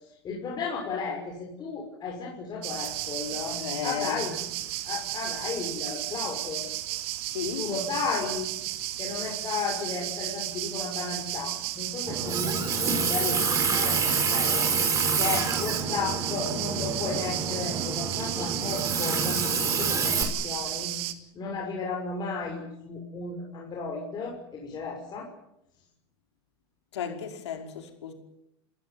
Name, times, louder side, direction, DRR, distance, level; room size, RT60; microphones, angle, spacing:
voice 1, 0.2-4.4 4.8-6.6 7.6-8.5 9.0-14.7 15.2-20.9 21.3-25.3, left 4 dB, 30° left, -1 dB, 6.2 m, -34 dB
sound 1, 2.6-21.1, right 15 dB, 65° right, 2.4 m, -34 dB
voice 2, 3.6-4.2 7.3-7.7 26.9-28.1, left 8 dB, 85° left, 4 dB, 5.3 m, -34 dB
Water tap faucet, 12.1-20.2, right 5 dB, 25° right, 5.7 m, -27 dB
29.0 x 15.5 x 9.6 m, 0.84 s
hypercardioid pair, 115°, 14 cm